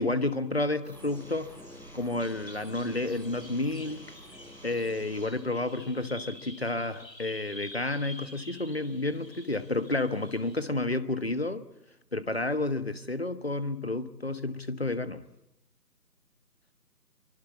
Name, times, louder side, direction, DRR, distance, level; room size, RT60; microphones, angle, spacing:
voice 1, 0.0-1.6 1.9-4.0 4.6-11.6 12.1-15.2, left 2 dB, 40° left, 12 dB, 1.3 m, -30 dB
sound 1, 0.8-5.2, equal, ahead, 2.2 m, -48 dB
Bird vocalization bird call bird song, 2.2-10.6, left 1 dB, 80° left, 7.7 m, -49 dB
24.0 x 23.0 x 8.3 m, 0.85 s
figure-of-eight pair, 165°, 50 cm